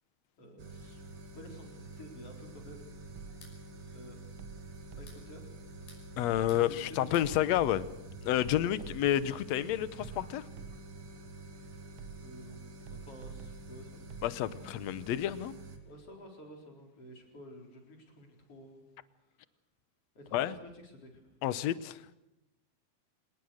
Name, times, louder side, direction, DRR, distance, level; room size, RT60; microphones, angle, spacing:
voice 1, 0.4-1.0 1.3-3.0 3.9-4.2 5.0-5.4 6.7-7.4 12.2-12.6 12.9-14.1 15.9-18.9 20.2-21.2, equal, 40° left, 2 dB, 5.2 m, -51 dB
sound 1, 0.6-15.8, right 2 dB, 40° right, 3.0 m, -48 dB
sound 2, 3.2-3.6 4.8-5.2 5.7-6.7 6.9-7.3, left 3 dB, 90° left, 7.5 m, -57 dB
sound 3, 3.2-3.7 4.4-5.4 6.3-6.8 7.2-9.3 10.0-11.1 12.0-12.5 12.9-14.4, right 6 dB, 75° right, 1.2 m, -49 dB
voice 2, 6.2-7.9 8.2-10.4 14.2-15.5 20.3-20.6 21.4-22.0, left 12 dB, 70° left, 15 dB, 1.7 m, -30 dB
26.5 x 20.0 x 6.5 m, 0.93 s
omnidirectional pair, 4.0 m